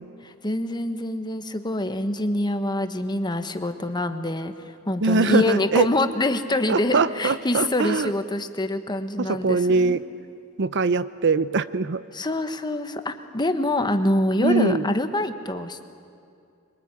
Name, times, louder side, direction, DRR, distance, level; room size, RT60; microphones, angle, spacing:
voice 1, 0.2-10.0 12.1-15.9, left 1 dB, 20° left, 8 dB, 1.3 m, -25 dB
voice 2, 5.0-5.9 6.7-8.1 9.2-10.0 10.6-12.0 14.4-14.9, right 4 dB, 60° right, 15 dB, 0.7 m, -22 dB
26.0 x 23.0 x 9.9 m, 2.4 s
head